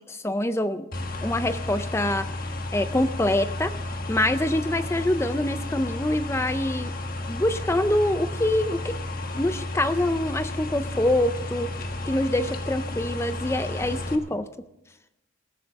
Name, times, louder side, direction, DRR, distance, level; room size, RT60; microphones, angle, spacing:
voice 1, 0.1-0.9 1.2-2.3 2.7-3.7 4.1-6.9 7.3-9.0 9.4-11.7 12.0-14.5, left 1 dB, 15° left, 11 dB, 0.4 m, -25 dB
sound 1, 0.9-14.2, left 2 dB, 45° left, 1.4 m, -32 dB
20.0 x 14.5 x 3.6 m, 0.91 s
head